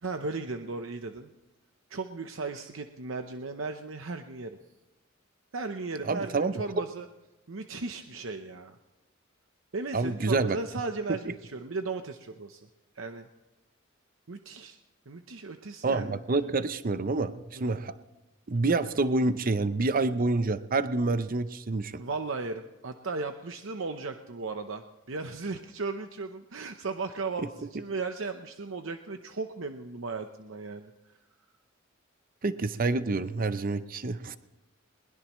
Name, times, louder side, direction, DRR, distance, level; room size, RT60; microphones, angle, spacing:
voice 1, 0.0-1.3 1.9-4.6 5.5-7.1 7.5-8.8 9.7-12.7 13.0-13.3 14.3-14.8 15.1-16.2 17.6-17.8 22.0-30.9, right 3 dB, 70° right, 6 dB, 0.8 m, -36 dB
voice 2, 6.0-6.8 9.9-10.6 15.8-17.9 18.5-22.0 32.4-34.4, right 3 dB, 45° right, 12 dB, 0.6 m, -28 dB
21.5 x 20.5 x 3.1 m, 1.0 s
head